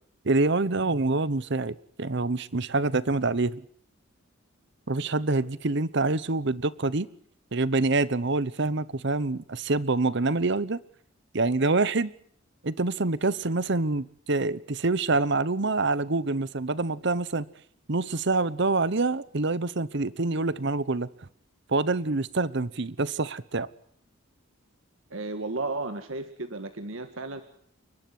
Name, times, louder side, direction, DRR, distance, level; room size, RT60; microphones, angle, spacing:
voice 1, 0.2-3.6 4.9-7.1 7.5-10.8 11.3-12.1 12.6-17.5 17.9-21.1 21.7-23.7, right 3 dB, 60° right, 1.0 m, -26 dB
voice 2, 25.1-27.4, right 2 dB, 80° right, 1.8 m, -33 dB
29.5 x 12.0 x 9.5 m
head